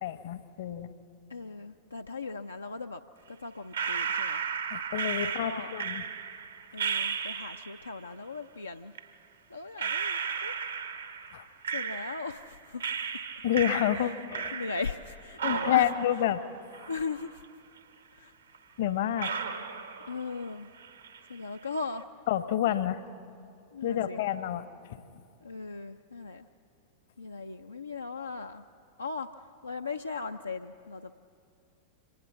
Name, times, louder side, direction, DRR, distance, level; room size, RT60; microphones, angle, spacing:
voice 1, 0.0-0.9 4.7-6.0 11.3-11.5 13.4-14.5 15.4-16.4 16.8-16.9 18.8-19.3 22.3-23.0 23.8-24.6 24.9-25.0, left 11 dB, 55° left, 13 dB, 0.9 m, -29 dB
voice 2, 1.3-3.0 3.3-4.5 5.2-5.8 6.7-8.9 9.5-10.5 11.1-11.3 11.7-13.0 14.0-14.2 14.5-15.9 16.9-17.4 18.1-18.3 19.2-19.4 20.1-20.7 21.3-22.0 23.7-24.3 25.4-26.5 27.2-28.6 29.0-31.1, left 4 dB, 80° left, 5 dB, 0.5 m, -38 dB
sound 1, 3.7-7.9 9.0-9.1 9.8-12.5 12.8-15.1 15.4-17.5 17.8-17.9 18.5-18.6 19.2-20.5 20.8-21.3, right 6 dB, 70° right, 1.1 m, -34 dB
25.0 x 19.0 x 7.0 m, 2.4 s
figure-of-eight pair, 90°, 0 cm